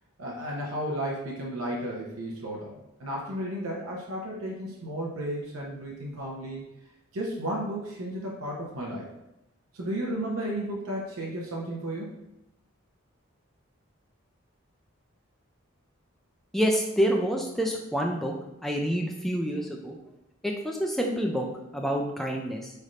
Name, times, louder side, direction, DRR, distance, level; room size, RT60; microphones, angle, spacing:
voice 1, 0.2-2.7 3.0-6.6 7.1-9.1 9.7-12.2, right 1 dB, 85° right, -3 dB, 0.7 m, -33 dB
voice 2, 16.5-18.3 18.6-20.0 20.4-21.5 21.7-22.7, equal, ahead, 0 dB, 0.3 m, -27 dB
3.3 x 2.5 x 4.1 m, 0.92 s
head